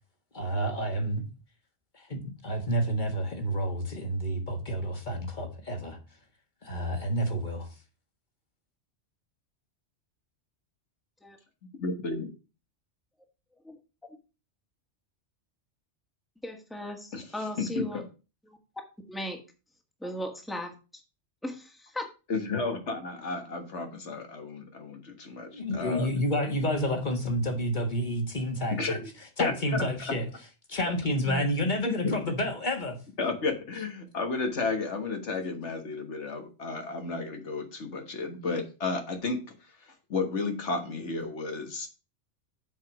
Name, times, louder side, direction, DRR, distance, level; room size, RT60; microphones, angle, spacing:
voice 1, 0.3-1.2 1.9-6.0 6.6-7.7 25.5-29.0 29.4-30.3 30.7-33.0, equal, 40° left, 1.8 m, -29 dB
voice 2, 11.8-12.3 17.1-17.2 17.6-18.0 22.3-26.1 28.8-29.1 29.4-29.5 31.3-31.5 31.9-32.1 33.2-39.4 40.1-41.9, left 3 dB, 80° left, 1.8 m, -32 dB
voice 3, 16.4-18.0 18.5-18.6 19.1-19.4 20.0-21.0 21.4-22.1, left 1 dB, ahead, 1.5 m, -37 dB
7.4 x 5.0 x 6.0 m
omnidirectional pair, 1.2 m